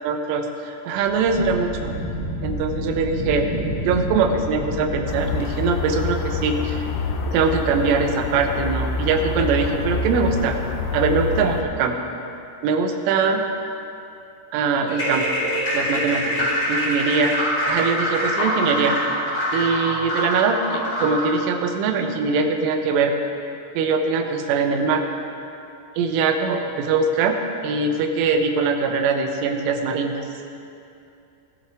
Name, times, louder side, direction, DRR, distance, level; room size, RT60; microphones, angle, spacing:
voice 1, 0.0-1.9 2.4-3.5 3.9-6.9 7.3-10.5 10.9-12.0 12.6-13.5 14.5-15.2 15.7-17.3 17.7-19.0 19.5-23.1 23.8-25.1 26.0-27.3 27.6-30.2, right 4 dB, 80° right, 5 dB, 3.3 m, -22 dB
Wind, 0.9-5.8, equal, 5° right, 2.4 m, -29 dB
sound 1, 5.1-11.6, left 4 dB, 85° left, 2.4 m, -27 dB
sound 2, 14.9-21.3, equal, 20° left, 3.3 m, -24 dB
15.5 x 12.5 x 3.5 m, 2.6 s
omnidirectional pair, 5.8 m